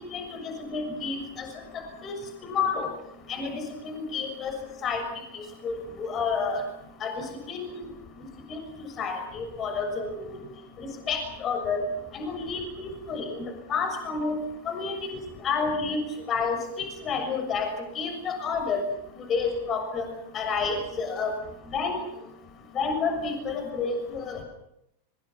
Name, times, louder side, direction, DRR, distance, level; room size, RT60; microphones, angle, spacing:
voice 1, 0.1-1.5 2.0-2.1 2.4-2.9 3.3-4.5 4.8-5.0 5.3-6.6 7.0-7.9 8.5-8.6 9.0-10.1 11.1-11.8 12.1-13.4 13.7-14.4 14.7-14.9 15.4-16.0 16.3-16.6 17.1-17.7 18.0-18.8 19.3-20.0 20.3-21.3 21.7-22.0 22.8-24.4, left 5 dB, 30° left, 6 dB, 6.8 m, -29 dB
25.5 x 25.0 x 6.0 m, 0.78 s
figure-of-eight pair, 90°, 0 cm